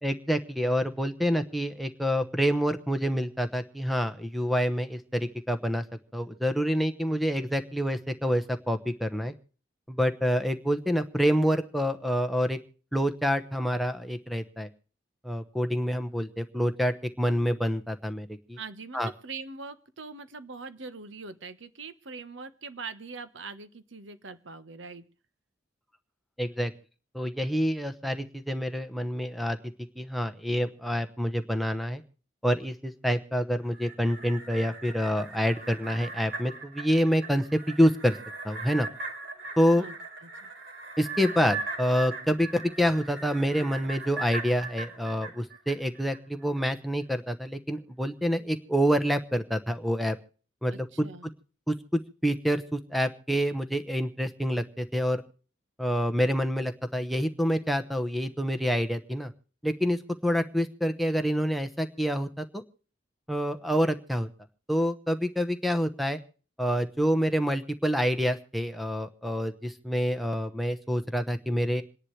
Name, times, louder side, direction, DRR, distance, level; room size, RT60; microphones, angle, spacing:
voice 1, 0.0-5.8 6.1-9.3 9.9-12.6 12.9-14.7 15.2-18.6 18.9-19.1 26.4-26.7 27.1-29.6 30.0-32.0 32.4-38.2 38.4-38.9 39.6-39.8 41.0-50.2 50.6-51.3 51.7-55.2 55.8-59.3 59.6-62.6 63.3-64.3 64.7-66.2 66.6-71.8, equal, ahead, 9 dB, 0.9 m, -27 dB
voice 2, 18.6-25.0 39.8-40.0 40.2-40.5 50.7-51.3, right 4 dB, 80° right, 12 dB, 1.3 m, -42 dB
sound 1, 33.6-46.2 46.6-46.7, right 3 dB, 60° right, 4.3 m, -39 dB
27.5 x 10.5 x 3.3 m, 0.41 s
head